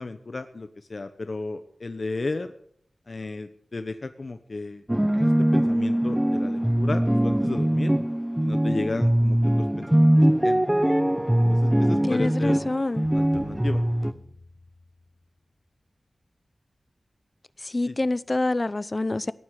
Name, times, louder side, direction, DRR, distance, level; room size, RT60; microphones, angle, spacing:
voice 1, 0.0-2.5 3.1-4.8 5.1-7.9 8.4-10.7 11.4-12.6 13.1-13.8 17.9-18.0, left 3 dB, 50° left, 1.1 m, -34 dB
sound 1, 4.9-14.1, right 1 dB, 10° right, 0.9 m, -22 dB
voice 2, 12.1-13.1 17.6-19.3, left 2 dB, 30° left, 0.7 m, -26 dB
sound 2, 13.0-15.3, left 3 dB, 70° left, 3.5 m, -46 dB
16.5 x 9.7 x 8.3 m
wide cardioid pair, 90°, 0 cm